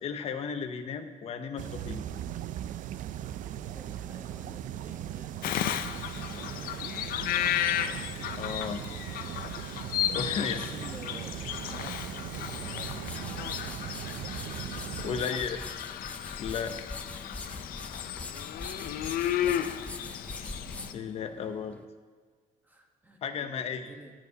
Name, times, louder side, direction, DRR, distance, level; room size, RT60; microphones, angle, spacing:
voice 1, 0.0-2.0 8.4-8.8 10.1-10.6 15.0-15.6 16.4-16.8 20.9-21.8 23.2-23.9, left 6 dB, 45° left, 8 dB, 0.7 m, -34 dB
sound 1, 1.6-15.3, right 11 dB, 60° right, 0.4 m, -39 dB
voice 2, 3.7-6.6 8.8-9.3 10.3-12.1 12.5-13.1 15.1-15.5 19.2-19.8 22.6-24.1, right 1 dB, 10° right, 2 dB, 1.1 m, -50 dB
Bird vocalization bird call bird song, 5.4-20.9, left 11 dB, 80° left, 0.5 m, -34 dB
sound 2, 12.5-21.9, left 2 dB, 10° left, 0.4 m, -43 dB
17.5 x 8.8 x 2.8 m, 1.5 s
cardioid pair, 170°, 15 cm